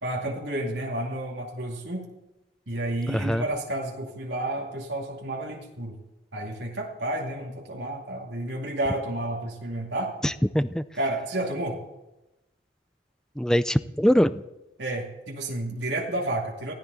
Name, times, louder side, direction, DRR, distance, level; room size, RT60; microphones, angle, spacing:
voice 1, 0.0-2.1 2.7-6.0 6.3-10.1 10.9-11.8 14.8-16.7, right 1 dB, 70° right, -1 dB, 2.4 m, -31 dB
voice 2, 3.1-3.4 10.2-10.8 13.4-14.4, equal, 5° left, 14 dB, 0.4 m, -23 dB
22.5 x 14.5 x 4.0 m, 0.98 s
head